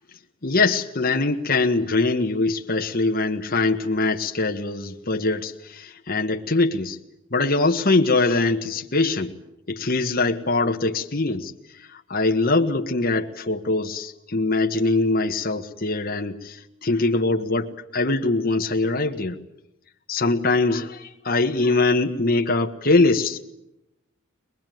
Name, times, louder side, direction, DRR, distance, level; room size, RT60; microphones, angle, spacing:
voice 1, 0.4-7.0 7.3-9.4 9.7-11.5 11.9-19.4 20.1-23.4, left 3 dB, 40° left, 3 dB, 1.5 m, -22 dB
22.0 x 21.5 x 9.2 m, 0.86 s
head